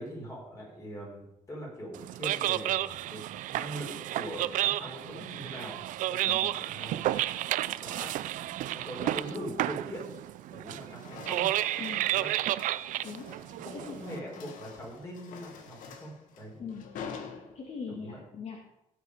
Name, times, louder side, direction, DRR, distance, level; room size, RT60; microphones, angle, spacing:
voice 1, 0.0-7.0 7.8-10.1 10.5-11.5 11.9-12.3 13.5-16.6 17.9-18.2, equal, 25° left, -1 dB, 4.8 m, -42 dB
sound 1, 1.9-14.2, right 14 dB, 75° right, 0.4 m, -32 dB
sound 2, 4.7-5.1 6.2-7.8 8.2-8.5 9.0-10.4 10.7-18.0, left 6 dB, 75° left, 1.7 m, -48 dB
voice 2, 6.2-6.5 11.8-12.0 13.0-13.3 13.9-14.0 16.6-16.8 17.6-18.6, left 5 dB, 50° left, 0 dB, 2.0 m, -40 dB
16.5 x 6.7 x 5.0 m, 0.86 s
cardioid pair, 115°, 14 cm